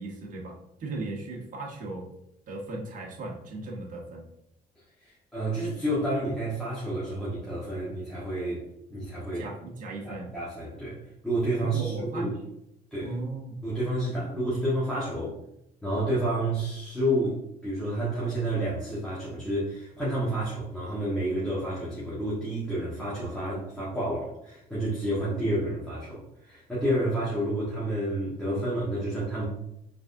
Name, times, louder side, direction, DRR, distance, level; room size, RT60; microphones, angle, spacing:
voice 1, 0.0-2.1 2.5-4.3 9.3-10.4 11.6-12.3 13.0-13.6 14.2-14.3, right 2 dB, 50° right, -1 dB, 1.1 m, -37 dB
voice 2, 5.0-8.6 8.9-9.5 10.0-12.3 12.9-13.1 13.6-15.4 15.8-29.4, right 1 dB, 5° left, -9 dB, 1.3 m, -30 dB
4.7 x 3.6 x 2.7 m, 0.83 s
cardioid pair, 110°, 17 cm